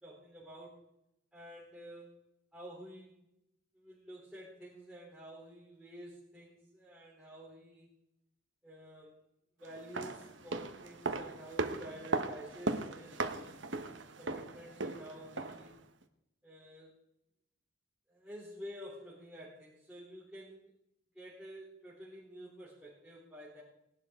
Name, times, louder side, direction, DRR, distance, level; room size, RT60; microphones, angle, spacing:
voice 1, 0.0-0.8 1.3-3.2 3.7-7.9 8.6-9.3 9.6-13.6 14.2-15.8 16.4-17.0 18.1-20.7 21.1-23.6, equal, 5° right, -8 dB, 3.4 m, -50 dB
sound 1, 9.7-15.7 16.0-16.1, right 3 dB, 70° right, 1.1 m, -38 dB
19.5 x 11.5 x 3.7 m, 0.82 s
head